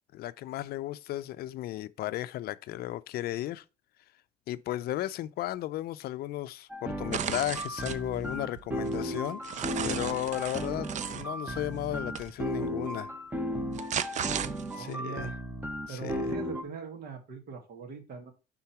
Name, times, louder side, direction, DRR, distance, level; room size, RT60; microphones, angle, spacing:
voice 1, 0.1-3.6 4.5-9.4 9.8-13.1 14.8-15.3 15.9-16.3, left 14 dB, 65° left, 0.4 m, -35 dB
sound 1, 6.7-16.6, equal, 10° right, 1.0 m, -35 dB
sound 2, 7.1-8.0 8.5-11.3 12.1-12.3 13.5-14.9, right 9 dB, 45° right, 0.5 m, -35 dB
voice 2, 14.7-15.3 15.9-18.3, right 6 dB, 65° right, 1.8 m, -41 dB
5.8 x 3.7 x 5.6 m
cardioid pair, 110°, 17 cm